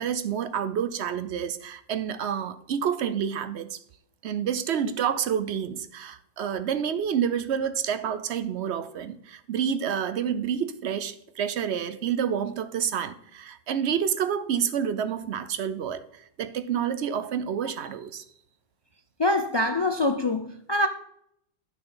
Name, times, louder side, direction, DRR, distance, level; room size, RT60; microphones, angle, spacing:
voice 1, 0.0-3.8 4.2-18.2, right 8 dB, 80° right, 1.0 m, -29 dB
voice 2, 19.2-20.9, left 2 dB, 40° left, 0.3 m, -24 dB
10.5 x 6.2 x 3.9 m
omnidirectional pair, 1.1 m